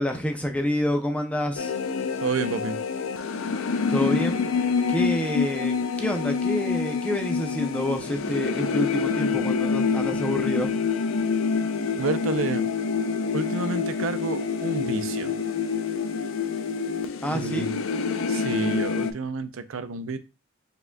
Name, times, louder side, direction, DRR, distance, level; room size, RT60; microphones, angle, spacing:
voice 1, 0.0-1.7 3.9-4.5 4.9-10.7 17.2-17.8, left 1 dB, 5° left, 0.5 m, -28 dB
sound 1, 1.6-19.1, left 5 dB, 80° left, 0.5 m, -27 dB
voice 2, 2.2-2.8 12.0-12.7 13.3-15.3 17.3-17.8 18.3-20.2, right 4 dB, 80° right, 0.5 m, -29 dB
4.7 x 3.7 x 2.2 m
head